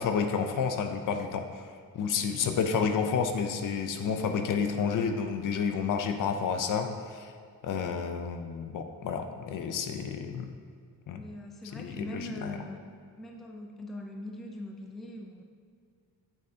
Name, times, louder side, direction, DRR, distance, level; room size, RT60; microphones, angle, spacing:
voice 1, 0.0-1.6 1.9-7.3 7.6-10.5 11.1-11.2 11.8-12.6, left 6 dB, 55° left, 6 dB, 0.6 m, -30 dB
voice 2, 2.0-2.5 11.1-12.9 13.2-15.4, left 1 dB, ahead, 1 dB, 0.4 m, -42 dB
8.3 x 6.8 x 2.8 m, 2.2 s
cardioid pair, 160°, 38 cm